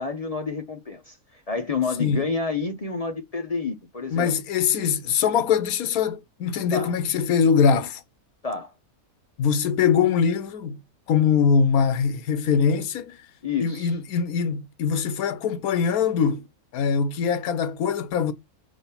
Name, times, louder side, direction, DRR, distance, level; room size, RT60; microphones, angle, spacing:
voice 1, 0.0-4.3 6.7-6.9 8.4-8.7 13.4-13.9, left 4 dB, 45° left, 0.5 m, -29 dB
voice 2, 4.1-8.0 9.4-10.8 11.1-13.2 13.6-16.5 16.7-18.3, left 6 dB, 80° left, 1.2 m, -22 dB
4.8 x 3.9 x 5.6 m
omnidirectional pair, 1.6 m